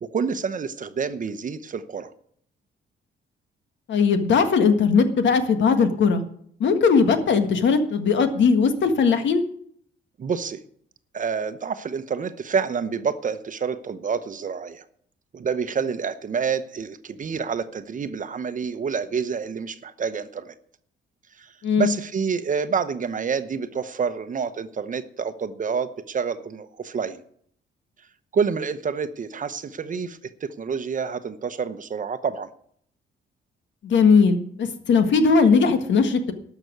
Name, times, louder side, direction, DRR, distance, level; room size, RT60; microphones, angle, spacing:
voice 1, 0.0-2.1 10.2-10.6 11.1-14.9 15.3-20.5 21.4-27.2 28.3-32.5, right 6 dB, 40° right, 12 dB, 0.9 m, -28 dB
voice 2, 3.9-6.2 6.6-9.4 21.6-21.9 33.8-36.3, left 5 dB, 70° left, 8 dB, 1.7 m, -19 dB
12.5 x 6.0 x 9.4 m, 0.64 s
cardioid pair, 90°, 20 cm